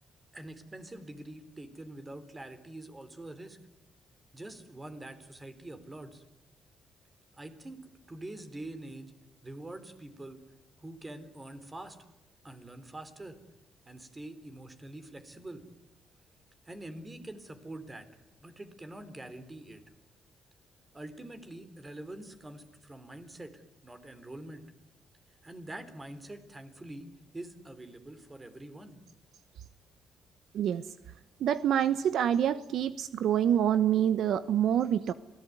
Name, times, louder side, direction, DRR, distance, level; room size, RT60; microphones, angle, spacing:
voice 1, 0.3-3.6 4.3-6.2 7.4-7.8 8.1-9.1 9.4-10.4 10.8-12.0 12.4-13.4 13.9-15.6 16.7-18.1 18.4-19.8 20.9-24.6 25.4-27.1 27.3-29.0, right 1 dB, 20° right, 11 dB, 3.7 m, -45 dB
voice 2, 31.4-35.1, right 9 dB, 70° right, 14 dB, 1.0 m, -26 dB
26.5 x 19.0 x 9.6 m, 0.94 s
cardioid pair, 90°, 0 cm